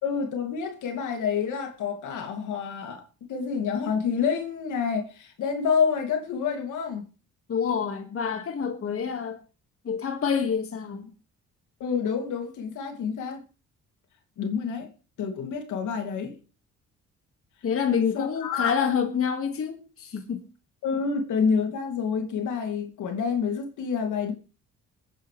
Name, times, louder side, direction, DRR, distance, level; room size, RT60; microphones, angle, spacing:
voice 1, 0.0-3.0 3.3-7.1 11.8-13.4 14.4-14.9 15.2-16.4 18.1-18.8 20.8-24.3, left 6 dB, 80° left, 2.7 m, -28 dB
voice 2, 7.5-9.4 9.8-11.1 17.6-20.4, left 7 dB, 45° left, 2.1 m, -27 dB
20.5 x 9.7 x 3.4 m
cardioid pair, 90°, 30 cm